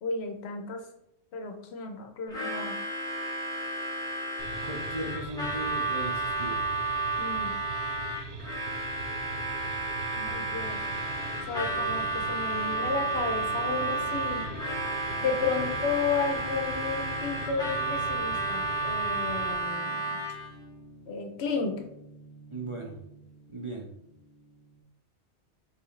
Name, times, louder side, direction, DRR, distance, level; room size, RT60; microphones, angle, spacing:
voice 1, 0.0-0.9 1.3-2.8 7.2-7.5 10.1-10.8 11.5-14.5 15.2-20.2 21.1-21.8, left 5 dB, 70° left, 6 dB, 0.9 m, -33 dB
Harmonica, 2.3-20.5, right 2 dB, 5° left, 1.0 m, -32 dB
sound 1, 4.4-19.5, right 3 dB, 85° right, 0.9 m, -42 dB
voice 2, 4.6-6.6 15.6-15.7 22.5-23.0 23.5-23.9, right 1 dB, 35° right, -1 dB, 0.5 m, -37 dB
sound 2, 10.6-24.8, left 1 dB, 35° left, 0.5 m, -48 dB
4.6 x 3.3 x 3.1 m, 0.79 s
omnidirectional pair, 1.1 m